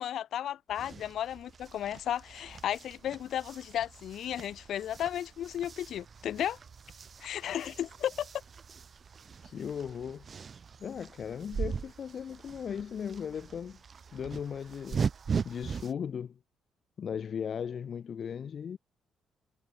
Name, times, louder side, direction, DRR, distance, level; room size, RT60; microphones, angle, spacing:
voice 1, 0.0-6.6 7.2-8.3, left 11 dB, 70° left, 3.1 m, -34 dB
sound 1, 0.7-15.9, right 6 dB, 45° right, 1.9 m, -40 dB
voice 2, 9.4-10.3 10.8-13.8 14.1-15.0 15.4-16.4 17.0-18.8, left 7 dB, 55° left, 2.2 m, -37 dB
cardioid pair, 90°, 0 cm